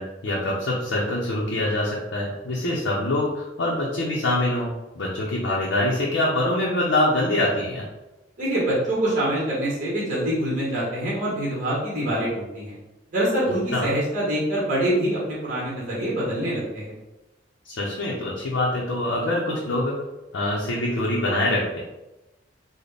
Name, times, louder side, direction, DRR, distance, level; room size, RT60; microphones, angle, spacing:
voice 1, 0.0-7.8 13.7-13.8 17.7-19.9 20.3-21.8, left 1 dB, 75° left, -4 dB, 0.6 m, -24 dB
voice 2, 8.4-12.7 13.1-16.9, right 1 dB, 45° right, -6 dB, 1.1 m, -25 dB
3.9 x 2.1 x 3.3 m, 1.0 s
head